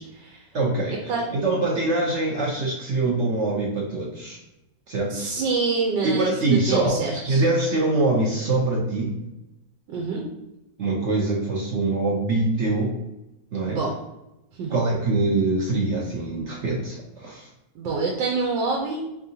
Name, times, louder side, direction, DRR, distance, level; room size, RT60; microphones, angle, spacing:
voice 1, 0.0-0.4 0.9-1.2 5.1-7.4 9.9-10.2 13.7-13.9 14.6-14.8 17.7-19.1, right 4 dB, 90° right, -1 dB, 1.4 m, -26 dB
voice 2, 0.5-4.4 4.9-5.3 6.0-9.2 10.8-12.9 13.5-13.8 14.7-17.5, right 2 dB, 60° right, -2 dB, 0.8 m, -24 dB
3.8 x 3.7 x 2.7 m, 0.93 s
omnidirectional pair, 1.9 m